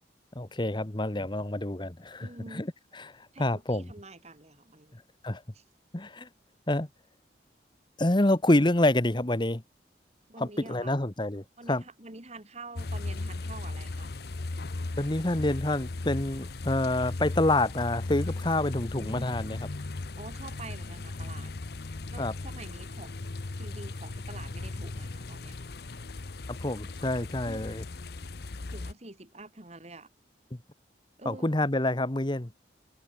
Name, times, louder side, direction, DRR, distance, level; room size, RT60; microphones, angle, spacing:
voice 1, 0.3-2.7 2.9-3.9 5.2-5.4 5.9-6.3 6.7-6.9 8.0-9.6 10.4-11.8 15.0-19.6 22.2-22.3 26.5-27.8 31.2-32.5, left 1 dB, 25° left, 1.3 m, -27 dB
voice 2, 2.2-2.7 3.3-4.9 5.5-5.6 10.3-11.0 11.6-14.1 19.0-19.6 20.2-21.5 22.1-23.1 23.6-25.6 27.4-27.8 28.7-30.1 31.2-31.5, right 2 dB, 40° right, 3.4 m, -47 dB
sound 1, 12.7-28.9, left 2 dB, 60° left, 0.9 m, -37 dB
head